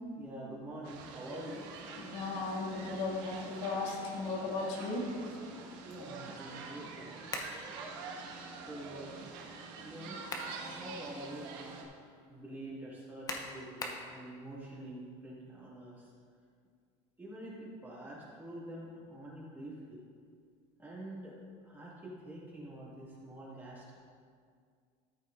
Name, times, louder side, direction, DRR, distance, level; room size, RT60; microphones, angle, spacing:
voice 1, 0.2-1.7 5.8-7.2 8.7-9.2 9.8-16.1 17.2-20.0 20.8-21.4 21.6-24.0, right 1 dB, 15° right, -7 dB, 2.4 m, -46 dB
sound 1, 0.8-11.8, right 4 dB, 85° right, 1.3 m, -46 dB
voice 2, 2.0-5.1, left 3 dB, 90° left, -4 dB, 2.5 m, -36 dB
sound 2, 7.3-7.6 10.0-10.6 11.1-11.2 13.3-14.1, left 2 dB, 25° left, 0.9 m, -39 dB
13.5 x 7.5 x 2.7 m, 2.1 s
cardioid pair, 145°, 15 cm